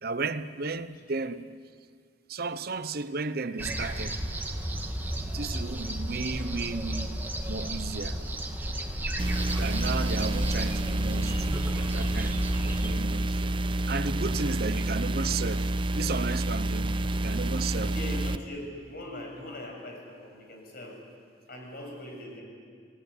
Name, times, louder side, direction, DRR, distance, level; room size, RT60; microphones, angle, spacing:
voice 1, 0.0-1.4 2.3-4.2 5.2-8.2 9.6-13.5 13.9-17.0 17.2-17.9, right 4 dB, 60° right, 0.9 m, -34 dB
sound 1, 3.6-13.0, right 1 dB, 10° right, 2.1 m, -33 dB
sound 2, 9.2-18.4, right 1 dB, 30° right, 0.7 m, -29 dB
voice 2, 17.9-21.0 21.5-22.4, left 1 dB, 55° left, 7.1 m, -41 dB
29.5 x 18.5 x 9.7 m
head